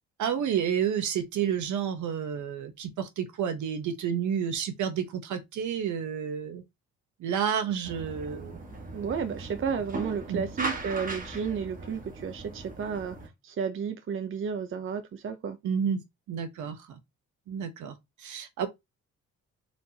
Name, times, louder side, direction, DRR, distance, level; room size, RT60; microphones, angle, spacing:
voice 1, 0.2-6.6 7.2-8.6 10.3-10.5 15.6-16.0 16.3-17.0 17.5-17.9 18.2-18.7, right 8 dB, 75° right, 1.2 m, -30 dB
sound 1, 7.8-13.3, right 2 dB, 25° right, 1.4 m, -38 dB
voice 2, 8.9-13.2 13.4-15.6, right 6 dB, 45° right, 0.7 m, -32 dB
4.4 x 3.5 x 2.8 m
cardioid pair, 90°, 30 cm